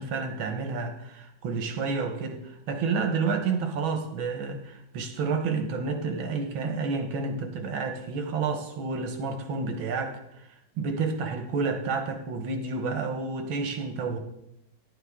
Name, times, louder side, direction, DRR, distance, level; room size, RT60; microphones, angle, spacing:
voice 1, 0.0-10.5 10.8-14.2, right 4 dB, 85° right, 6 dB, 1.9 m, -30 dB
10.5 x 10.0 x 3.6 m, 0.85 s
omnidirectional pair, 2.2 m